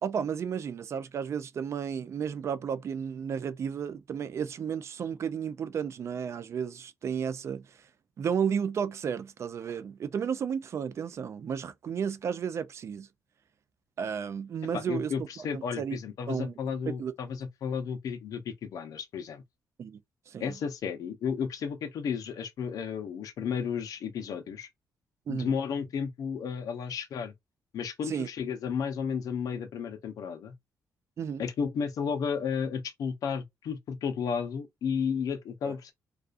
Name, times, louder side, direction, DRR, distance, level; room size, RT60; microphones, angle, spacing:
voice 1, 0.0-7.8 8.2-13.1 14.0-15.1 15.5-16.0 16.3-16.5 17.0-17.1 19.8-20.0 20.3-20.5 25.3-25.5 28.1-28.3 31.2-31.4 35.6-35.7, right 7 dB, 45° right, 0.3 m, -33 dB
voice 2, 14.7-19.4 20.4-24.7 25.3-27.3 27.7-30.5 31.4-35.9, left 6 dB, 70° left, 0.6 m, -33 dB
2.4 x 2.3 x 2.4 m
cardioid pair, 120°, 6 cm